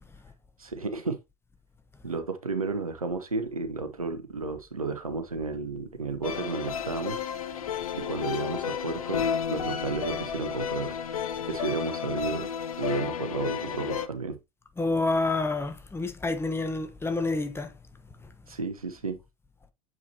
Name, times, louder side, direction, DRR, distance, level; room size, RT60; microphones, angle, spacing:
voice 1, 0.6-1.2 2.0-7.2 7.9-11.0 11.5-12.5 12.8-14.4 18.5-19.2, right 4 dB, 90° right, 0.9 m, -32 dB
sound 1, 6.2-14.1, left 7 dB, 80° left, 0.6 m, -32 dB
voice 2, 14.8-17.7, left 3 dB, 15° left, 1.0 m, -28 dB
7.4 x 4.8 x 2.8 m
figure-of-eight pair, 75°, 18 cm